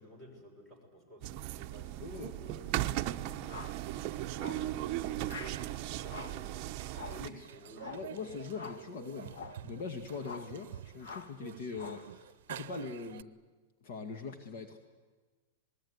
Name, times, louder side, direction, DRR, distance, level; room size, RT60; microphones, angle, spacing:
voice 1, 0.0-8.2, equal, 15° left, 4 dB, 6.1 m, -55 dB
sound 1, 1.2-7.3, right 14 dB, 35° right, 0.8 m, -37 dB
voice 2, 2.0-2.4 7.1-7.5 7.8-13.3 13.8-14.8, left 5 dB, 50° left, 6 dB, 2.0 m, -42 dB
sound 2, 3.4-3.8 4.4-4.7 5.2-5.6 6.0-6.4 6.9-7.3 7.8-8.1 8.5-8.9 9.3-9.6 10.2-10.6 11.0-11.4 11.7-12.1, left 5 dB, 75° left, 2.2 m, -46 dB
sound 3, 4.0-13.2, right 12 dB, 65° right, 0.7 m, -49 dB
27.5 x 20.5 x 9.7 m, 1.4 s
supercardioid pair, 165°, 0 cm